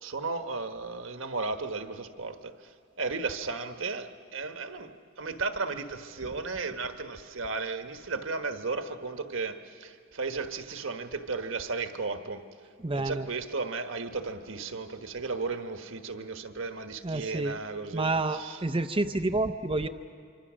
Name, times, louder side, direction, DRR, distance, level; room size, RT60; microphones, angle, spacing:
voice 1, 0.0-2.5 3.0-4.9 5.2-12.4 12.9-18.6, right 4 dB, 75° right, 7 dB, 1.3 m, -34 dB
voice 2, 12.8-13.3 17.0-17.6 17.9-19.9, right 2 dB, 25° right, 7 dB, 0.6 m, -29 dB
25.5 x 25.0 x 6.3 m, 2.3 s
head